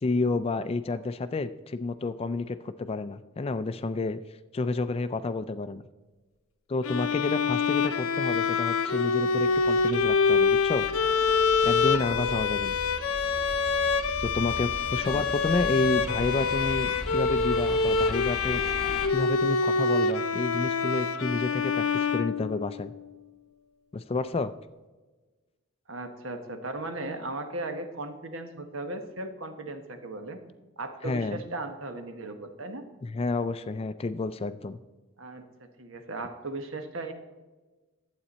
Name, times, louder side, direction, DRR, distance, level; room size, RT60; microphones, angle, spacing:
voice 1, 0.0-4.2 4.5-5.8 6.7-10.9 11.6-12.8 14.2-18.6 19.1-22.9 23.9-24.5 31.0-31.4 33.0-34.8, left 3 dB, 30° left, 13 dB, 0.3 m, -30 dB
Bowed string instrument, 6.8-22.9, left 5 dB, 85° left, 0.7 m, -26 dB
sound 1, 9.5-19.1, left 1 dB, ahead, 1.0 m, -40 dB
voice 2, 15.0-15.5 25.9-30.4 30.8-32.9 35.2-35.5 35.8-37.1, right 2 dB, 70° right, 7 dB, 1.1 m, -37 dB
11.5 x 8.3 x 4.1 m, 1.2 s
head